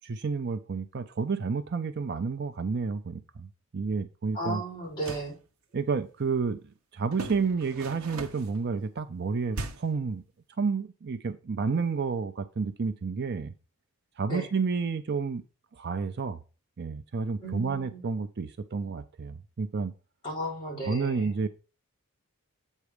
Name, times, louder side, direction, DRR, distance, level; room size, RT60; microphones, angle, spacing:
voice 1, 0.0-4.6 5.7-10.2 10.6-13.5 14.2-15.4 15.7-16.4 16.8-19.9 20.9-21.5, right 4 dB, 50° right, 0.5 m, -30 dB
voice 2, 4.3-5.4 14.3-14.5 17.4-18.0 20.2-21.3, right 1 dB, 20° left, 4.2 m, -34 dB
sound 1, 4.8-5.4 7.1-8.6 9.5-10.0, right 2 dB, 75° right, 0.8 m, -38 dB
8.2 x 4.1 x 4.9 m
head